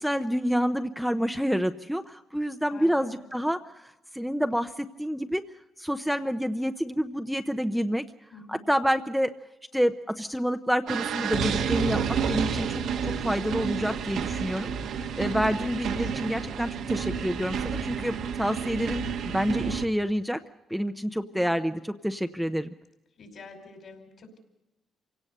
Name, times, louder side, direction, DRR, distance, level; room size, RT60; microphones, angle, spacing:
voice 1, 0.0-5.4 5.8-8.0 8.5-9.3 9.7-14.7 15.2-20.4 20.7-22.7, equal, ahead, 7 dB, 0.8 m, -28 dB
voice 2, 2.7-3.4 8.3-8.6 15.6-16.4 21.1-21.4 23.2-24.4, left 3 dB, 60° left, 5 dB, 5.4 m, -48 dB
sound 1, 10.9-19.9, right 6 dB, 80° right, 1.5 m, -30 dB
27.0 x 17.5 x 6.7 m, 0.97 s
cardioid pair, 90°, 0 cm